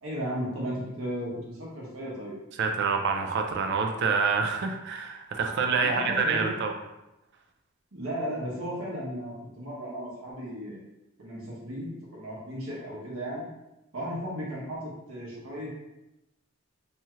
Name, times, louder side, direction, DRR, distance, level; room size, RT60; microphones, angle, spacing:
voice 1, 0.0-2.4 5.8-6.5 7.9-10.8 11.2-13.5 13.9-15.7, equal, 75° right, -5 dB, 1.0 m, -35 dB
voice 2, 2.6-6.7, right 5 dB, 55° right, 3 dB, 0.3 m, -27 dB
2.7 x 2.3 x 3.0 m, 0.95 s
head